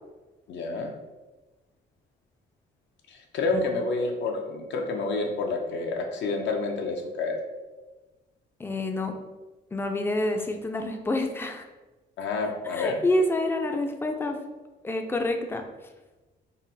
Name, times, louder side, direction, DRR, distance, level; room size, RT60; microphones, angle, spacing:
voice 1, 0.5-0.9 3.1-7.4 12.2-13.0, left 3 dB, 70° left, 3 dB, 0.5 m, -29 dB
voice 2, 8.6-9.2 9.7-11.6 12.6-14.4 14.8-15.6, left 1 dB, 10° left, 4 dB, 0.3 m, -28 dB
3.8 x 2.0 x 2.7 m, 1.2 s
cardioid pair, 90°, 20 cm